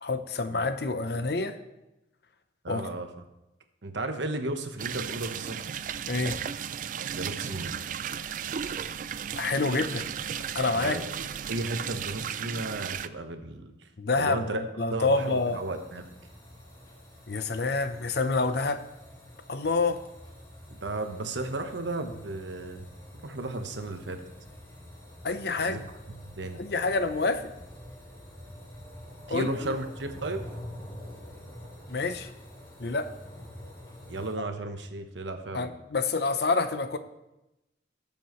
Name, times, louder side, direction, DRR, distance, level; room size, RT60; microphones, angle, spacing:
voice 1, 0.0-1.6 2.7-2.9 6.1-6.4 9.4-10.1 10.5-11.0 14.0-15.6 17.3-18.8 19.5-20.0 25.2-25.8 26.6-27.4 29.3-29.7 31.9-32.3 32.8-33.1 35.5-37.0, left 3 dB, 60° left, 10 dB, 0.7 m, -27 dB
voice 2, 2.6-3.1 3.8-5.8 7.1-7.7 10.7-13.7 14.2-14.6 14.9-16.1 20.7-22.9 23.2-24.3 25.6-25.8 26.2-26.6 29.3-30.4 34.1-35.7, right 2 dB, 80° right, 7 dB, 1.1 m, -34 dB
sound 1, 4.8-13.1, right 8 dB, 45° right, 0.3 m, -35 dB
sound 2, 15.1-34.3, equal, 20° left, 2.7 m, -47 dB
19.0 x 7.2 x 3.1 m, 0.94 s
head